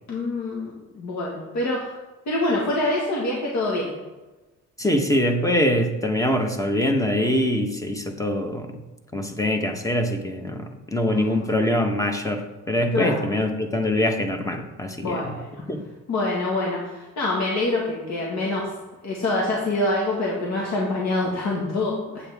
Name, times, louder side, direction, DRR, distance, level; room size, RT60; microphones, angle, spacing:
voice 1, 0.1-2.0 2.2-3.9 11.1-11.5 12.9-13.3 15.0-15.6 16.1-18.7 19.0-22.3, left 2 dB, 65° left, -4 dB, 1.8 m, -25 dB
voice 2, 4.8-8.7 9.1-15.2 15.7-15.8, left 1 dB, 10° left, 5 dB, 1.2 m, -24 dB
8.4 x 7.8 x 3.6 m, 1.1 s
cardioid pair, 90°, 30 cm